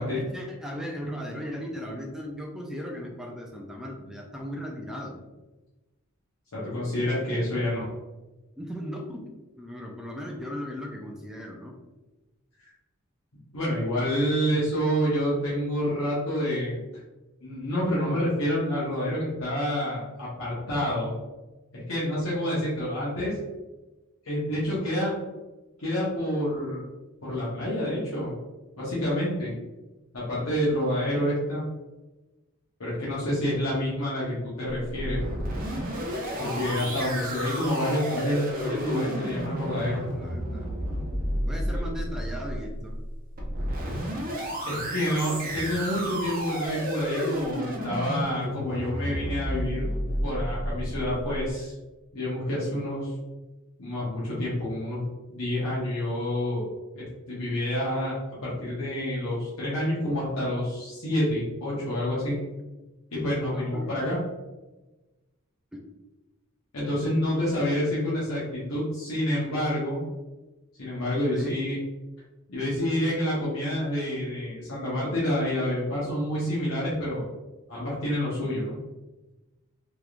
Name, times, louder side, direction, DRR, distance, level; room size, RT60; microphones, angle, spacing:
voice 1, 0.0-5.2 8.6-9.2 9.6-11.7 36.4-36.9 40.1-40.7 41.5-43.0 63.5-64.1 65.7-65.8 67.6-67.9 71.3-71.6, equal, 5° right, 0 dB, 0.3 m, -37 dB
voice 2, 6.5-7.8 13.5-16.8 17.4-21.1 21.7-23.4 24.2-25.1 25.8-26.8 27.2-28.3 28.8-29.5 30.1-31.6 32.8-35.2 36.4-40.0 44.6-49.8 50.2-51.7 52.1-53.1 53.8-55.0 55.3-56.6 56.9-58.1 58.4-62.4 63.1-64.2 66.7-70.0 70.8-71.8 72.5-77.3 77.7-78.8, equal, 75° left, -8 dB, 1.0 m, -28 dB
sound 1, 34.7-51.5, equal, 40° right, 0.7 m, -32 dB
3.4 x 3.0 x 2.4 m, 1.1 s
head